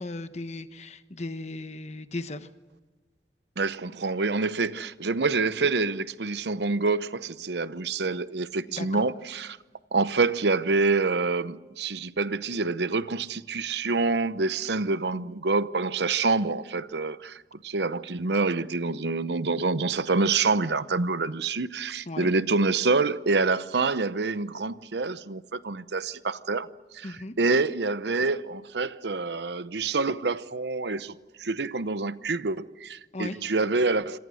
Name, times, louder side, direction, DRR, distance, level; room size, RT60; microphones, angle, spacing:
voice 1, 0.0-2.5 8.8-9.0 22.1-22.3 27.0-27.3 33.1-33.4, left 2 dB, 40° left, 1.2 m, -36 dB
voice 2, 3.6-9.6 9.9-26.7 26.9-34.2, right 3 dB, 75° right, 0.8 m, -27 dB
27.0 x 26.0 x 6.4 m
head